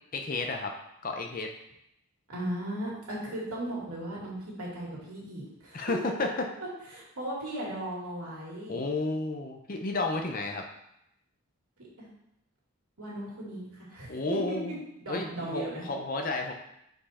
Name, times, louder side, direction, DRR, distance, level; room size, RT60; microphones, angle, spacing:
voice 1, 0.1-0.7 1.0-1.5 5.7-6.5 8.7-10.6 14.1-14.8 15.1-16.5, left 2 dB, 40° left, 3 dB, 0.6 m, -32 dB
voice 2, 2.3-6.1 6.9-8.8 12.0-12.1 13.0-14.7 15.0-15.9, right 1 dB, 85° right, -5 dB, 2.3 m, -37 dB
5.4 x 4.6 x 4.2 m, 0.79 s
head